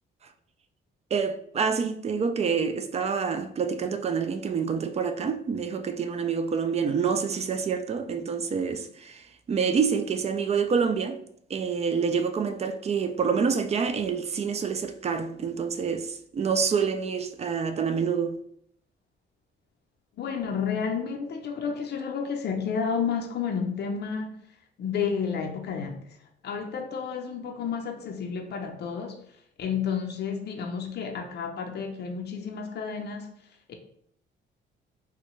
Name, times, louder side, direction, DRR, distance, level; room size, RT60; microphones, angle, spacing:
voice 1, 1.1-11.2 11.5-18.4, right 6 dB, 35° right, 0.4 m, -27 dB
voice 2, 20.2-24.4 24.8-26.2 26.4-29.2 29.6-33.3 33.7-33.8, left 6 dB, 60° left, 0.6 m, -31 dB
3.6 x 2.1 x 3.0 m
cardioid pair, 90°, 20 cm